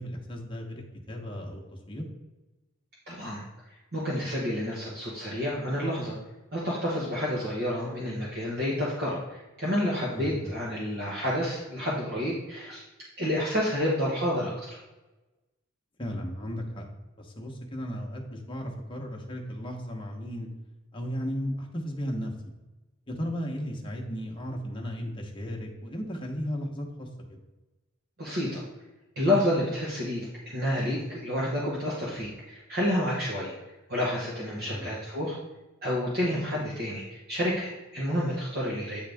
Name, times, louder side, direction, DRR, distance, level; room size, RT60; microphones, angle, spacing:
voice 1, 0.0-1.6 1.9-2.0 10.1-10.4 16.0-16.9 17.2-20.5 20.9-22.5 23.1-27.4 34.6-34.9, equal, 25° left, 0 dB, 1.0 m, -35 dB
voice 2, 3.1-3.4 3.9-6.1 6.5-12.8 13.2-14.5 28.2-28.6 29.2-33.5 33.9-35.4 35.8-39.0, left 1 dB, 50° right, -6 dB, 1.2 m, -29 dB
8.6 x 3.9 x 3.5 m, 1.1 s
head